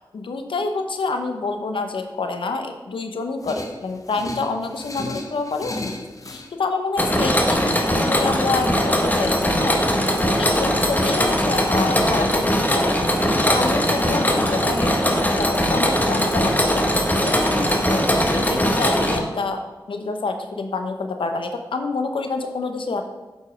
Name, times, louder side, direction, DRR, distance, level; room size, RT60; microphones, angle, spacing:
voice 1, 0.1-5.9 6.2-9.9 10.3-13.0 13.4-18.0 18.3-19.6 19.9-23.1, left 3 dB, 80° left, 6 dB, 0.9 m, -28 dB
sound 1, 3.4-6.5, left 2 dB, 40° left, 1.0 m, -34 dB
Mechanisms, 7.0-19.2, equal, 20° left, 1.3 m, -20 dB
8.0 x 5.4 x 5.0 m, 1.2 s
cardioid pair, 40°, 9 cm